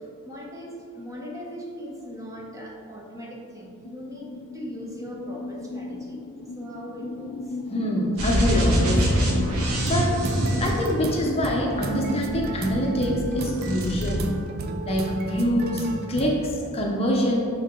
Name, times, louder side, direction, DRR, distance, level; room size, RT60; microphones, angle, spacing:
voice 1, 0.2-6.2 6.6-7.3, equal, 15° right, -2 dB, 0.9 m, -39 dB
sound 1, 3.8-13.9, left 2 dB, 70° left, 0.4 m, -36 dB
voice 2, 7.7-9.4 9.9-10.2 10.6-14.2 14.8-17.4, equal, 25° left, -1 dB, 0.7 m, -25 dB
sound 2, 8.2-11.5 12.2-13.3 13.5-14.2, right 1 dB, 90° right, 1.4 m, -25 dB
sound 3, 9.7-16.4, right 2 dB, 45° right, 0.5 m, -34 dB
11.0 x 3.9 x 3.7 m, 2.5 s
head